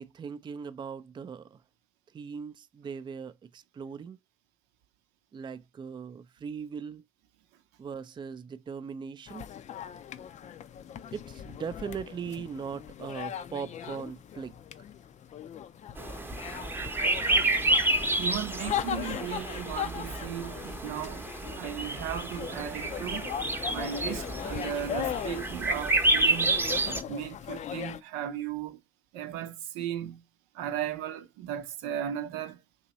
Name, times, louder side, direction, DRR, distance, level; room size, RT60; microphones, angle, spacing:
voice 1, 0.0-1.6 2.1-4.2 5.3-7.0 7.8-9.4 11.1-14.6, right 6 dB, 30° right, 0.4 m, -39 dB
sound 1, 9.3-28.0, left 9 dB, 45° left, 0.5 m, -39 dB
sound 2, 16.0-27.0, right 2 dB, 10° right, 0.8 m, -29 dB
voice 2, 18.2-21.3 21.6-23.3 23.7-26.6 26.9-28.8 29.1-30.2 30.5-32.6, right 10 dB, 80° right, 0.6 m, -36 dB
2.9 x 2.7 x 4.0 m
hypercardioid pair, 65°, 17 cm